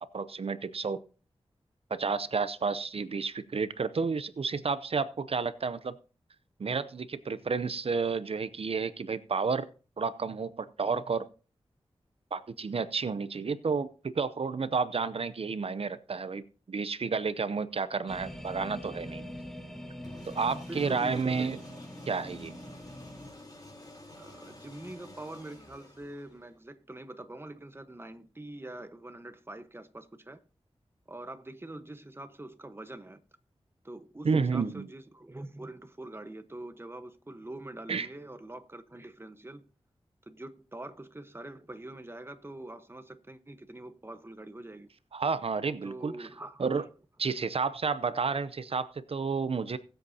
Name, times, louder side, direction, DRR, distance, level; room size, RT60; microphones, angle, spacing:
voice 1, 0.1-1.0 1.9-5.9 6.6-9.7 10.0-11.2 12.3-16.4 16.7-19.2 20.3-21.6 22.1-22.6 34.2-34.9 37.9-38.1 45.1-46.3 46.6-46.8 47.2-49.8, right 5 dB, 65° right, 0.7 m, -31 dB
sound 1, 18.1-23.3, equal, 5° left, 1.6 m, -43 dB
sound 2, 20.0-26.6, left 1 dB, 35° left, 3.5 m, -50 dB
voice 2, 20.4-21.6 24.2-30.4 31.1-33.2 33.8-39.6 40.2-44.9 45.8-46.9, right 1 dB, 20° right, 1.1 m, -44 dB
20.5 x 7.9 x 2.8 m
wide cardioid pair, 60°, 11 cm